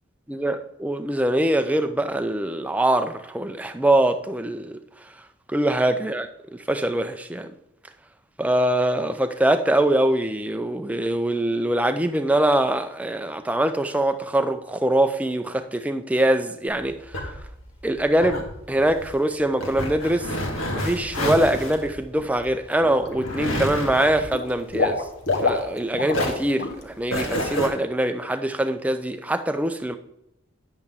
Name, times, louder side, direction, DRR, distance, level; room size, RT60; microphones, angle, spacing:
voice 1, 0.3-4.8 5.5-7.5 8.4-17.0 17.8-20.3 20.7-25.0 25.4-30.0, right 1 dB, 5° right, 0.4 m, -23 dB
sound 1, 16.7-25.8 26.1-27.7, left 1 dB, 85° left, 1.8 m, -30 dB
Water / Liquid, 22.2-22.5 22.8-23.5 23.8-26.3 26.6-26.8 27.2-27.3, left 3 dB, 50° left, 1.1 m, -27 dB
9.7 x 7.7 x 3.6 m
head